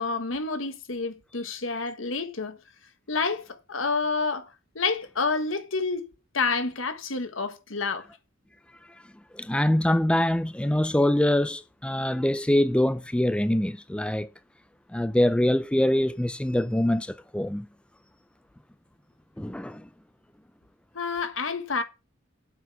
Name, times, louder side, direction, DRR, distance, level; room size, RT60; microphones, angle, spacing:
voice 1, 0.0-2.6 3.1-6.1 6.3-8.1 20.9-21.8, left 4 dB, 75° left, 1.4 m, -29 dB
voice 2, 9.3-14.3 14.9-17.7 19.4-19.9, left 1 dB, 5° left, 0.4 m, -24 dB
7.6 x 6.1 x 7.0 m
head